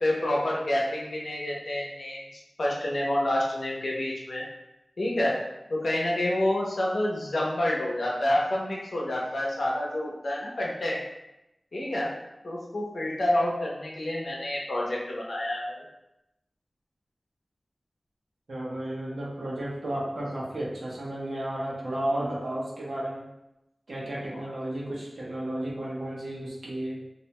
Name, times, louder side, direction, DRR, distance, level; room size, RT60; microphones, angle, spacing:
voice 1, 0.0-2.2 2.6-4.4 5.0-5.4 5.7-11.0 11.7-12.1 12.4-15.8, left 1 dB, 80° left, -3 dB, 0.6 m, -28 dB
voice 2, 18.5-23.3 23.9-27.0, right 1 dB, 85° right, -6 dB, 0.8 m, -33 dB
2.5 x 2.1 x 2.9 m, 0.89 s
wide cardioid pair, 65°, 0 cm